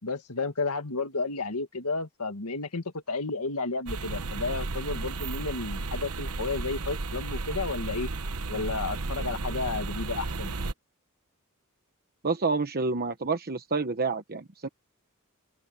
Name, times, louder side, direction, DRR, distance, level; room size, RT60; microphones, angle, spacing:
voice 1, 0.0-8.1 8.5-10.6, left 3 dB, 80° left, 2.0 m, -32 dB
sound 1, 3.9-10.7, right 3 dB, 75° right, 1.1 m, -33 dB
voice 2, 12.2-14.7, right 4 dB, 45° right, 1.1 m, -28 dB
open air
head